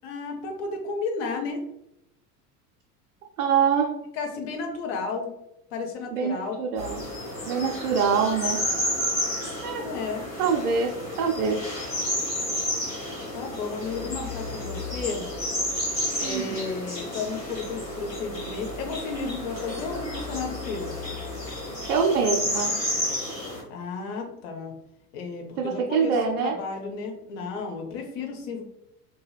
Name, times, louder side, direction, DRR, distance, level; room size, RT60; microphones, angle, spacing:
voice 1, 0.0-1.6 4.1-5.3 5.7-6.6 9.8-10.2 13.3-15.2 16.2-20.9 23.7-24.7 25.1-28.6, left 4 dB, 50° left, 3 dB, 0.8 m, -33 dB
voice 2, 3.4-3.9 6.1-7.0 7.5-8.6 9.6-9.8 10.4-11.6 16.2-16.6 21.9-22.7 25.6-26.5, right 6 dB, 65° right, 0 dB, 0.5 m, -24 dB
sound 1, 6.8-23.6, left 1 dB, 90° left, 1.1 m, -31 dB
2.7 x 2.7 x 2.3 m, 0.81 s
figure-of-eight pair, 75°, 47 cm